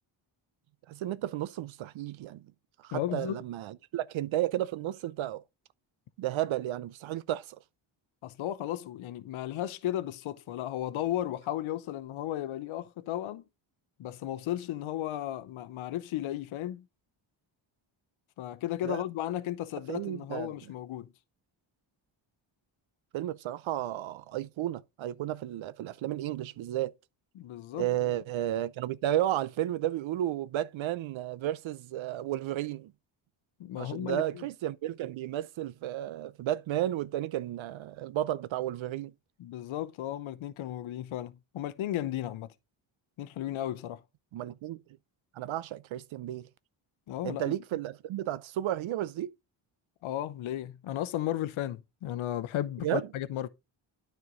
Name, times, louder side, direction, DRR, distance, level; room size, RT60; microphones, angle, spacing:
voice 1, 0.9-2.4 2.8-5.4 6.2-7.6 18.8-19.0 19.9-20.5 23.1-26.9 27.7-32.9 33.8-39.1 44.3-44.8 45.3-46.5 47.2-49.3 52.8-53.1, right 13 dB, 70° right, 0.6 m, -33 dB
voice 2, 2.9-3.4 8.2-13.4 14.0-16.8 18.4-21.1 27.4-27.9 33.6-34.4 39.4-42.5 43.2-44.0 47.1-47.5 50.0-53.5, left 12 dB, 75° left, 0.8 m, -34 dB
9.5 x 4.6 x 3.7 m
cardioid pair, 75°, 49 cm